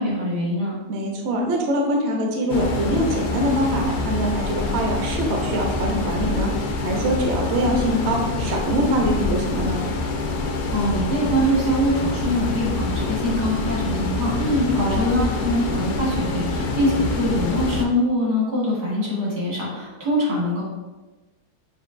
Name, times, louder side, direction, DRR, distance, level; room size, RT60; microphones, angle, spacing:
voice 1, 0.0-0.8 10.7-20.6, equal, 75° right, -5 dB, 2.1 m, -23 dB
voice 2, 0.9-9.8 14.4-15.0, equal, 60° right, 1 dB, 0.7 m, -23 dB
sound 1, 2.5-17.9, left 3 dB, 75° left, 1.1 m, -26 dB
6.5 x 2.6 x 2.5 m, 1.2 s
omnidirectional pair, 1.7 m